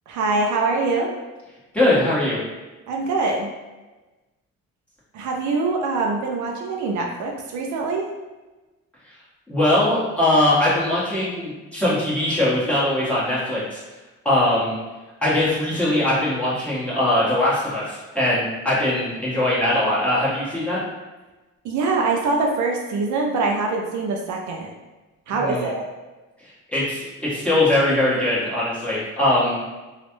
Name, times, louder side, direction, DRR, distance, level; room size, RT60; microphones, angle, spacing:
voice 1, 0.1-1.1 2.9-3.5 5.1-8.1 21.6-24.7 25.3-25.8, right 3 dB, 70° right, 1 dB, 0.5 m, -23 dB
voice 2, 1.7-2.4 9.5-13.8 14.2-14.8 15.2-20.8 25.3-25.7 26.7-29.6, left 1 dB, 5° left, -10 dB, 1.4 m, -21 dB
3.0 x 2.3 x 3.0 m, 1.2 s
cardioid pair, 90°, 30 cm